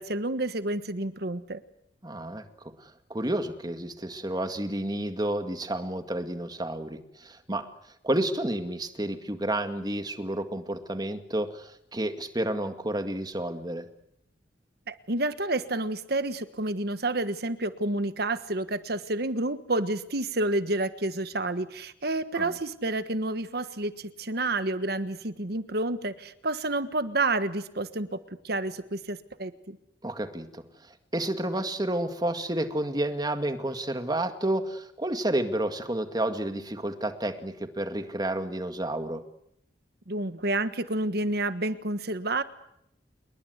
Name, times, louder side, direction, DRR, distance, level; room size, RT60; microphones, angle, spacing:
voice 1, 0.0-1.6 14.9-28.2 28.4-29.8 40.1-42.4, right 2 dB, 60° right, 12 dB, 1.4 m, -29 dB
voice 2, 2.0-7.7 8.0-13.9 22.3-22.5 30.0-39.2, right 1 dB, 20° right, 8 dB, 2.1 m, -30 dB
28.0 x 22.0 x 8.1 m, 0.77 s
head